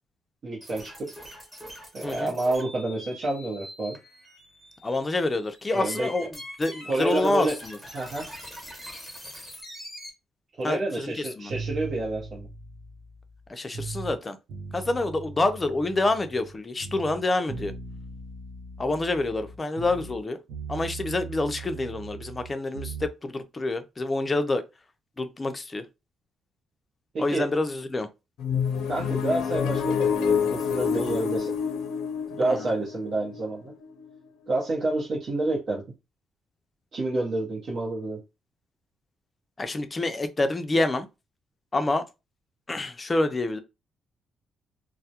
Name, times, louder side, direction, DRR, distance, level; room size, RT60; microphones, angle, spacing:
voice 1, 0.4-1.1 1.9-4.0 5.7-6.3 6.8-7.5 7.9-8.3 10.6-12.5 27.1-27.5 28.9-31.5 32.3-33.7 34.5-35.8 36.9-38.2, right 2 dB, 55° right, 0.8 m, -29 dB
sound 1, 0.6-10.1, equal, 5° right, 1.1 m, -43 dB
voice 2, 2.0-2.3 4.8-6.3 6.6-7.8 10.6-11.5 13.5-14.4 14.7-17.7 18.8-20.4 20.7-24.6 25.2-25.8 27.2-28.1 32.4-32.6 39.6-41.1 41.7-42.0 42.7-43.6, left 2 dB, 25° left, 0.4 m, -27 dB
sound 2, 11.5-14.2 14.5-16.6 16.8-20.2 20.5-23.1, right 4 dB, 85° right, 0.6 m, -39 dB
sound 3, 28.4-34.2, left 7 dB, 85° left, 0.5 m, -27 dB
2.2 x 2.0 x 2.7 m
cardioid pair, 90°, 0 cm